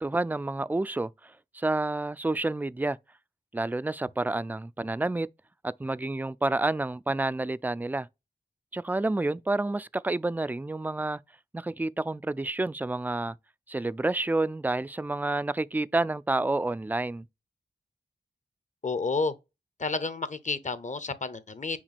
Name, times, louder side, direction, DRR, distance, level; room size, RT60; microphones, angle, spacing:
voice 1, 0.0-3.0 3.5-5.3 5.6-8.1 8.7-11.2 11.5-13.4 13.7-17.3, right 2 dB, 10° right, 0.3 m, -29 dB
voice 2, 18.8-19.3 19.8-21.8, left 3 dB, 45° left, 0.8 m, -30 dB
5.9 x 2.2 x 4.1 m
cardioid pair, 40°, 17 cm